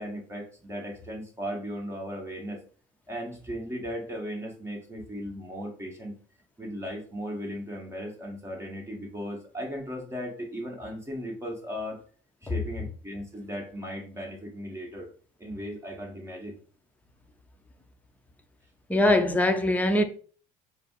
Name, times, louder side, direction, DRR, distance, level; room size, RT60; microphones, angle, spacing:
voice 1, 0.0-2.6 3.1-6.1 6.6-12.0 12.4-15.1 15.4-16.6, equal, 15° right, 1.3 m, -37 dB
voice 2, 18.9-20.0, left 1 dB, 10° left, 0.7 m, -22 dB
4.9 x 2.0 x 4.5 m
supercardioid pair, 95°, 16 cm